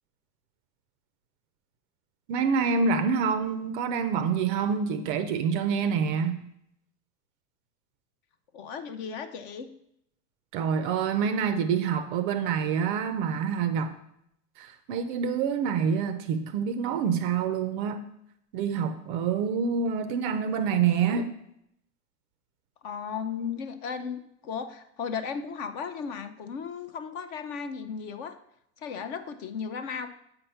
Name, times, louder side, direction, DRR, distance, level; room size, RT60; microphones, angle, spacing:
voice 1, 2.3-6.4 10.5-13.9 14.6-18.0 18.5-21.3, right 6 dB, 35° right, 10 dB, 0.4 m, -27 dB
voice 2, 8.5-9.7 22.8-28.4 28.8-30.1, left 6 dB, 35° left, 10 dB, 0.5 m, -35 dB
7.9 x 4.3 x 5.4 m, 0.77 s
hypercardioid pair, 120°, 46 cm